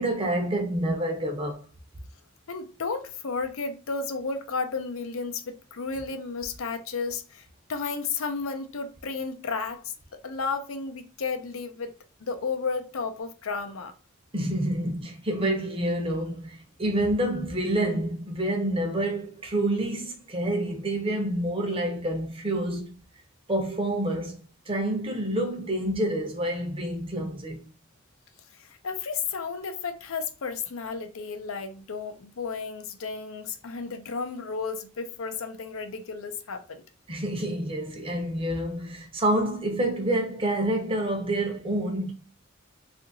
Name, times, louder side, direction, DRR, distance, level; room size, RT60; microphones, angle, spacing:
voice 1, 0.0-1.6 14.3-22.9 23.5-27.6 37.1-42.1, right 1 dB, 25° right, 0.7 m, -28 dB
voice 2, 2.5-11.9 12.2-13.9 28.6-36.8, left 4 dB, 75° left, 0.6 m, -33 dB
2.7 x 2.5 x 3.8 m
head